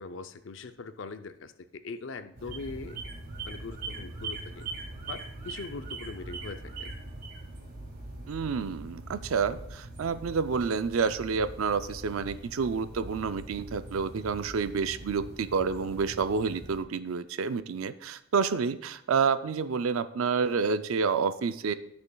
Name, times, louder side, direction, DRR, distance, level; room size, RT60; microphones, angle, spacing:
voice 1, 0.0-3.0 3.5-4.7 5.1-6.9, left 4 dB, 65° left, 10 dB, 0.5 m, -41 dB
sound 1, 2.4-16.8, right 2 dB, 50° right, 2.2 m, -42 dB
voice 2, 8.3-21.7, right 5 dB, 85° right, 12 dB, 0.5 m, -29 dB
16.0 x 6.9 x 2.3 m, 0.77 s
head